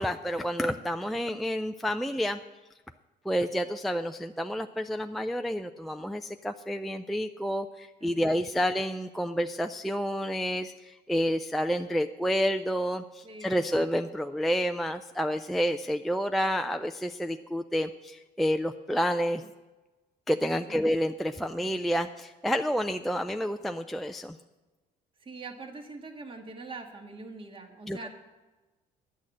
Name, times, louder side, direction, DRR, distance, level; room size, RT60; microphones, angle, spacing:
voice 1, 0.0-2.4 3.3-19.4 20.3-24.4 27.9-28.0, equal, ahead, 6 dB, 0.3 m, -29 dB
voice 2, 8.0-8.7 13.2-13.7 20.7-20.9 25.2-28.1, right 3 dB, 30° right, 4 dB, 1.6 m, -44 dB
10.5 x 6.4 x 8.7 m, 1.2 s
cardioid pair, 110°, 17 cm